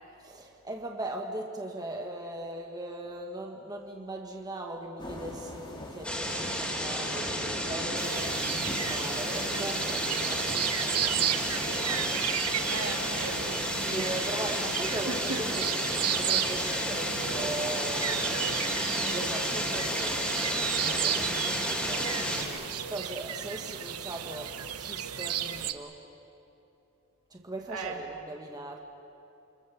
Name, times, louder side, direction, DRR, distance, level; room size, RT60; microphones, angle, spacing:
voice 1, 0.2-12.5 13.8-18.3 19.0-26.0 27.3-28.8, right 1 dB, 15° right, 1 dB, 1.6 m, -39 dB
sound 1, 5.0-22.1, left 1 dB, 20° left, 2.5 m, -47 dB
sound 2, 6.0-22.4, equal, 5° left, 3.7 m, -31 dB
sound 3, 8.0-25.7, right 10 dB, 90° right, 1.0 m, -34 dB
voice 2, 12.7-14.5 15.1-15.5 23.5-23.6 27.7-28.0, right 3 dB, 65° right, 1 dB, 2.9 m, -38 dB
29.0 x 25.5 x 7.0 m, 2.9 s
head